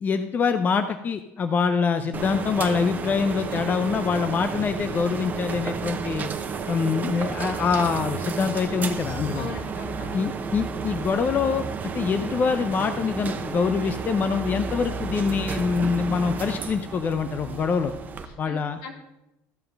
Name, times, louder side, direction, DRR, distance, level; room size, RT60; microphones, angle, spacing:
voice 1, 0.0-6.3 6.7-9.5 10.1-11.7 11.9-17.9 18.4-18.8, left 5 dB, 35° left, 9 dB, 0.7 m, -25 dB
sound 1, 2.1-18.3, right 5 dB, 35° right, 0.9 m, -32 dB
voice 2, 9.3-10.3 18.2-18.9, left 4 dB, 80° left, 2 dB, 2.3 m, -39 dB
14.0 x 5.7 x 5.3 m, 0.90 s
supercardioid pair, 100°, 5 cm